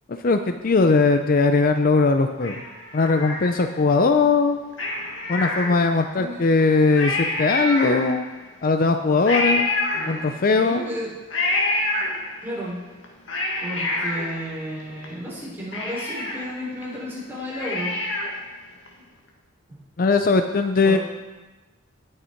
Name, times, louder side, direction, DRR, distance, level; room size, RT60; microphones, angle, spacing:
voice 1, 0.1-2.6 2.9-4.6 5.3-8.2 8.6-9.7 10.1-10.8 20.0-21.0, left 3 dB, 45° left, 7 dB, 0.5 m, -19 dB
Cat, 2.4-3.9 4.7-6.1 6.6-6.7 6.9-8.4 9.2-10.6 11.3-12.6 13.0-15.0 15.4-15.5 15.7-18.5 18.9-19.0, left 2 dB, 65° left, 1.9 m, -27 dB
voice 2, 5.0-5.3 6.1-6.4 8.9-9.1 9.9-11.1 12.4-12.8 13.6-17.9 20.8-21.0, equal, 10° right, -7 dB, 4.1 m, -33 dB
18.5 x 6.6 x 4.5 m, 1.2 s
head